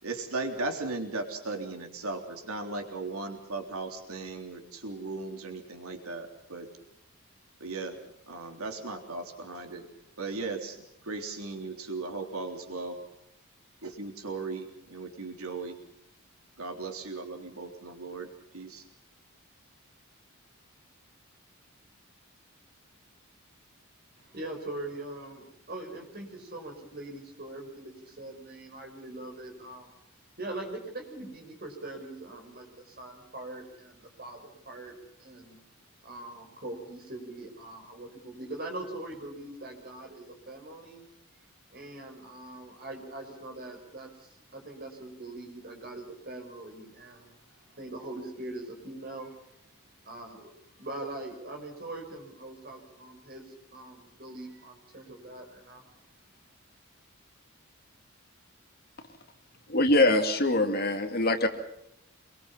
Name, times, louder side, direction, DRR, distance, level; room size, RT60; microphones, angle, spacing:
voice 1, 0.0-6.7 7.6-8.0 8.3-9.9 10.2-13.0 13.8-15.8 16.6-18.9, right 3 dB, 90° right, 4 dB, 3.6 m, -37 dB
voice 2, 24.2-29.9 30.4-35.6 36.0-41.1 41.7-49.3 50.0-55.8, right 2 dB, 45° right, 3 dB, 6.0 m, -42 dB
voice 3, 59.7-61.5, left 2 dB, 45° left, 6 dB, 2.4 m, -23 dB
26.5 x 22.5 x 5.7 m, 0.78 s
head